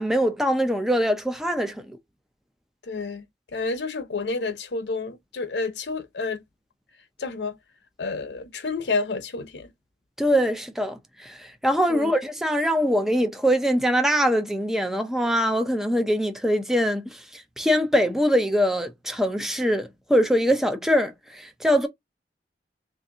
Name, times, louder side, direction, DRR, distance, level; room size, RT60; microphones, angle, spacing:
voice 1, 0.0-2.0 10.2-21.9, equal, ahead, 0.5 m, -23 dB
voice 2, 2.8-6.4 7.2-7.6 8.0-9.7 11.9-12.1, left 3 dB, 85° left, 0.7 m, -30 dB
3.1 x 2.7 x 3.7 m
head